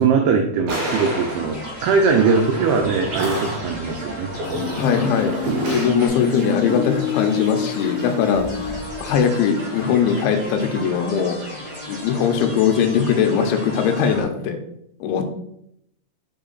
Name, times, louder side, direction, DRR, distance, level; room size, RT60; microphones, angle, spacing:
voice 1, 0.0-4.3, right 5 dB, 90° right, 3 dB, 2.3 m, -20 dB
sound 1, 0.7-6.1, right 1 dB, 60° right, 2.2 m, -28 dB
sound 2, 0.9-14.2, equal, 30° right, 0.9 m, -35 dB
Human voice, 4.4-9.4, left 7 dB, 65° left, 3.2 m, -28 dB
voice 2, 4.7-5.3 5.7-11.4 11.9-14.6 15.0-15.3, left 7 dB, 85° left, 6 dB, 3.1 m, -20 dB
6.4 x 4.3 x 3.9 m, 0.74 s
omnidirectional pair, 5.4 m